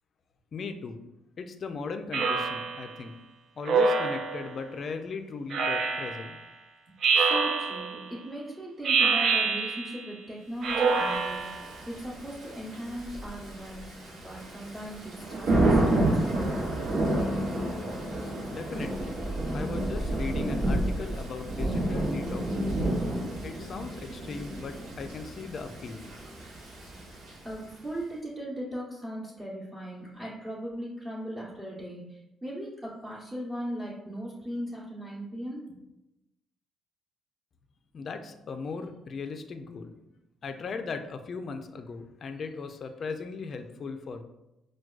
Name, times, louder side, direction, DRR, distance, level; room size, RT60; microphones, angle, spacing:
voice 1, 0.5-1.0 1.4-3.2 3.5-6.4 18.5-19.1 19.5-22.8 23.4-26.1 37.9-39.9 40.4-44.2, left 4 dB, 50° left, 7 dB, 0.3 m, -38 dB
Speech synthesizer, 2.1-2.9 3.7-4.5 5.5-6.3 7.0-8.0 8.8-10.1 10.6-11.7, right 4 dB, 65° right, 0.3 m, -26 dB
voice 2, 7.1-11.5 11.9-16.5 27.4-35.6, equal, 15° right, -8 dB, 0.9 m, -38 dB
Thunder / Rain, 11.1-27.7, right 1 dB, 80° right, 0.7 m, -30 dB
4.5 x 2.2 x 2.3 m, 0.92 s
cardioid pair, 90°, 0 cm